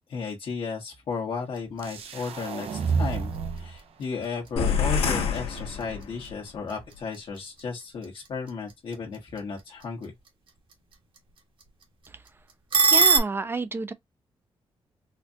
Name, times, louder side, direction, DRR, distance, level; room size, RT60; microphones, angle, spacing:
voice 1, 0.1-3.3 3.6-10.1, left 5 dB, 65° left, 1.2 m, -34 dB
sound 1, 1.4-13.2, right 5 dB, 60° right, 1.3 m, -31 dB
sound 2, 1.8-3.8, right 5 dB, 80° right, 0.6 m, -30 dB
sound 3, 4.6-6.4, left 6 dB, 90° left, 1.1 m, -27 dB
voice 2, 12.8-13.9, right 3 dB, 25° right, 0.4 m, -30 dB
4.3 x 2.4 x 2.6 m
wide cardioid pair, 135°, 10 cm